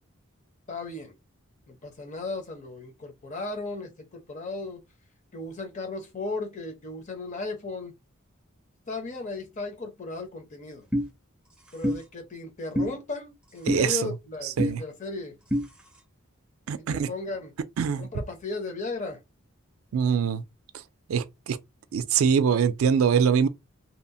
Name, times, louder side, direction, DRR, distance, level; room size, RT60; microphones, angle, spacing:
voice 1, 0.7-1.1 1.7-4.8 5.3-7.9 8.9-10.9 11.7-15.3 16.8-17.5 18.0-19.2 19.9-20.1, left 3 dB, 35° left, 0.7 m, -36 dB
sound 1, 10.9-11.1 11.8-12.0 12.7-12.9 13.7-13.8 14.6-14.7 15.5-15.6, equal, 5° right, 0.5 m, -25 dB
voice 2, 13.7-14.1 14.6-14.8 16.7-17.1 17.8-18.1 19.9-20.4 21.1-21.6 21.9-23.5, right 7 dB, 80° right, 0.4 m, -23 dB
2.8 x 2.0 x 2.6 m
head